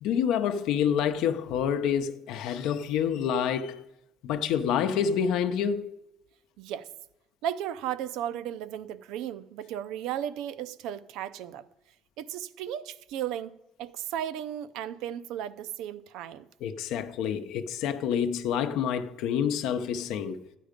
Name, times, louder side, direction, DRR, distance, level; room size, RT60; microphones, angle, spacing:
voice 1, 0.0-3.8 4.2-5.9 16.6-20.4, left 8 dB, 70° left, 0.7 m, -28 dB
voice 2, 6.6-6.9 7.4-11.6 12.2-16.5, right 10 dB, 70° right, 0.6 m, -35 dB
13.0 x 9.3 x 5.1 m
cardioid pair, 160°, 0 cm